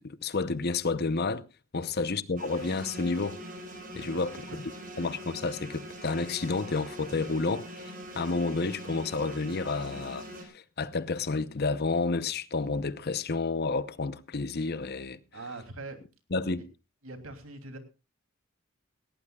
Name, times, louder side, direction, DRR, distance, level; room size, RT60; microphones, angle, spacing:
voice 1, 0.0-1.4 1.7-3.4 3.9-4.6 5.0-15.2 16.3-16.6, left 3 dB, 50° left, 0.8 m, -30 dB
sound 1, 2.4-10.4, equal, 45° right, 4.2 m, -43 dB
voice 2, 4.0-4.6 15.3-16.0 17.0-17.8, right 2 dB, 85° right, 2.9 m, -43 dB
18.0 x 17.0 x 2.3 m
head